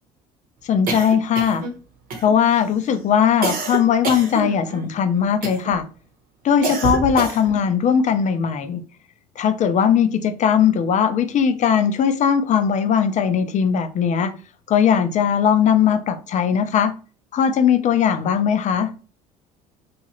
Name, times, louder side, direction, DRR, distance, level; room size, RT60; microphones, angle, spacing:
voice 1, 0.6-1.7 2.2-5.9 6.4-8.8 9.4-14.3 14.7-16.9 17.3-18.9, left 8 dB, 40° left, 0.5 m, -19 dB
sound 1, 0.9-1.8 2.1-2.6 3.4-4.9 5.4-5.8 6.6-7.6, right 4 dB, 55° right, 1.0 m, -27 dB
2.9 x 2.4 x 2.9 m
hypercardioid pair, 70°, 18 cm